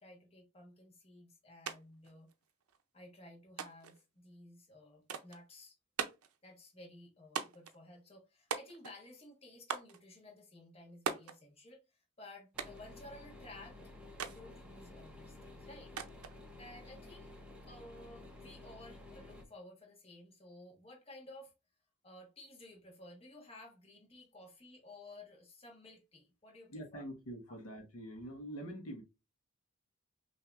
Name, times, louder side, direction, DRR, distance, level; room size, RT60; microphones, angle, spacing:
voice 1, 0.0-2.3 2.9-5.8 6.4-13.8 14.2-16.0 16.6-21.5 22.0-27.0, left 1 dB, 25° left, 1.2 m, -55 dB
sound 1, 1.7-1.8 2.0-2.8 3.6-4.0 5.1-5.4 6.0-6.4 7.4-7.8 8.5-9.0 9.7-10.0 11.1-11.4 12.6-12.9 14.2-14.4 16.0-16.4, right 6 dB, 75° right, 0.5 m, -40 dB
sound 2, 12.5-19.4, left 2 dB, 5° right, 0.7 m, -53 dB
voice 2, 26.7-29.0, equal, 75° left, 1.1 m, -45 dB
5.6 x 2.7 x 2.4 m
head